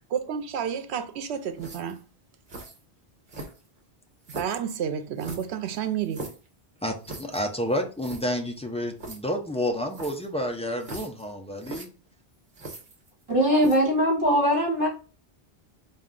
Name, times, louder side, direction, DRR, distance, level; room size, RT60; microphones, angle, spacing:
voice 1, 0.1-2.0 4.3-6.3, right 8 dB, 90° right, 0.8 m, -30 dB
sound 1, 1.6-2.0 2.5-2.8 3.3-3.8 4.2-4.6 5.2-6.5 7.0-7.4 7.7-7.8 8.0-8.2 9.0-9.2 9.9-10.3 10.8-11.2 11.6-11.9 12.5-13.2 13.6-13.9, right 2 dB, 50° right, 1.1 m, -40 dB
voice 2, 6.8-11.9, equal, 10° left, 0.3 m, -30 dB
voice 3, 13.3-14.9, equal, 30° right, 2.2 m, -21 dB
4.2 x 2.3 x 3.7 m
omnidirectional pair, 1.1 m